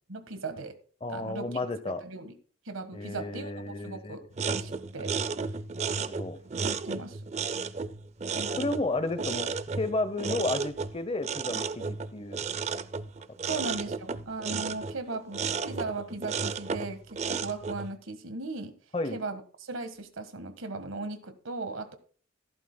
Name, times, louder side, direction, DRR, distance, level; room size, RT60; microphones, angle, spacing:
voice 1, 0.1-0.7 1.1-1.6 1.9-2.3 2.6-5.1 6.6-7.2 8.3-8.7 13.4-18.7 19.1-22.0, right 3 dB, 90° right, 1.5 m, -38 dB
voice 2, 1.0-2.0 2.9-4.2 5.8-6.4 8.6-12.4 13.5-13.6 18.9-19.2, left 2 dB, 30° left, 0.8 m, -32 dB
sound 1, 4.3-17.9, right 5 dB, 35° right, 0.4 m, -33 dB
15.0 x 12.0 x 2.2 m
head